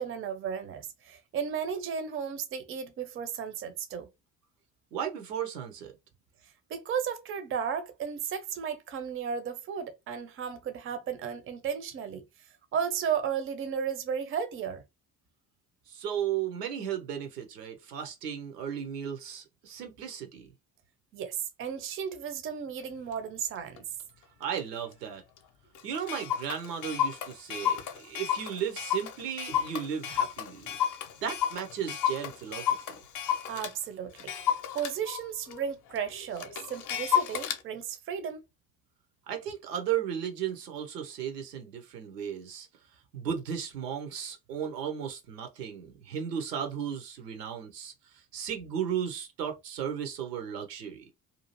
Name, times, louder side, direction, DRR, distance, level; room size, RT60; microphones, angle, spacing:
voice 1, 0.0-4.1 6.7-12.2 12.7-14.8 21.1-23.8 33.5-34.3 34.7-38.4, right 7 dB, 25° right, 0.6 m, -34 dB
voice 2, 4.9-5.9 15.9-20.5 24.4-25.2 25.8-30.7 31.2-33.0 39.3-42.7 43.1-51.0, right 8 dB, 75° right, 0.8 m, -35 dB
Clock, 23.1-23.2 23.8-24.0 24.6-24.7 24.9-25.0 25.4-25.5 25.7-33.7 34.2-37.6, left 9 dB, 40° left, 0.6 m, -32 dB
2.7 x 2.4 x 2.8 m
figure-of-eight pair, 50°, 49 cm